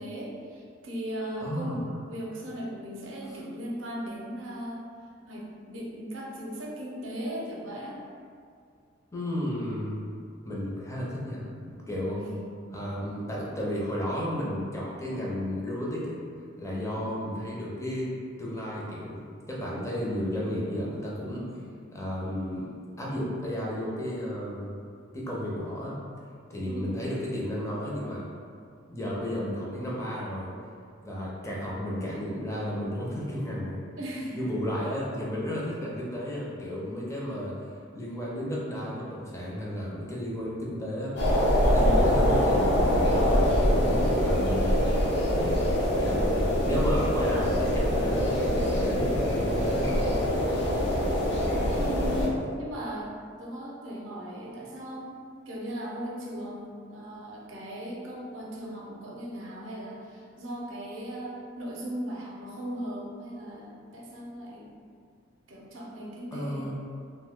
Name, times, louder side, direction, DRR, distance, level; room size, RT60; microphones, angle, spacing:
voice 1, 0.0-4.8 5.3-8.0 12.2-12.5 17.0-17.2 26.6-26.9 34.0-34.5 51.7-64.8 65.5-66.7, equal, 75° right, -3 dB, 0.6 m, -38 dB
voice 2, 1.4-1.9 3.3-3.4 9.1-10.0 10.4-12.2 12.7-16.2 16.6-18.1 18.4-19.2 19.5-21.4 21.9-22.7 23.0-24.7 25.1-25.9 26.5-28.3 28.9-30.5 31.0-33.8 34.3-37.5 37.9-41.1 41.7-44.7 45.3-45.6 46.0-50.1 52.2-52.4 66.3-66.7, equal, 15° left, -5 dB, 0.5 m, -33 dB
sound 1, 41.2-52.3, equal, 65° left, 0.7 m, -24 dB
2.7 x 2.1 x 3.5 m, 2.3 s
head